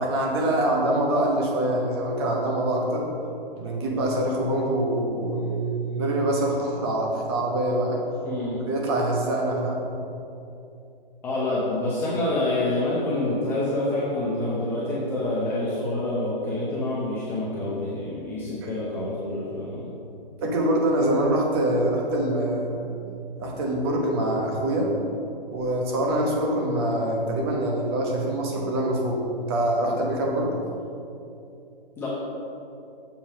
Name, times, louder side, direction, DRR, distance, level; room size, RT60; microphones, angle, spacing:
voice 1, 0.0-3.1 3.6-8.0 8.7-9.9 18.6-18.7 20.4-22.9 23.4-24.9 25.5-29.2 29.5-30.6, right 1 dB, 25° right, -1 dB, 1.1 m, -24 dB
voice 2, 8.2-8.6 11.2-19.9 32.0-32.1, left 2 dB, 10° left, -8 dB, 0.6 m, -27 dB
7.2 x 5.5 x 5.1 m, 2.8 s
hypercardioid pair, 150°, 29 cm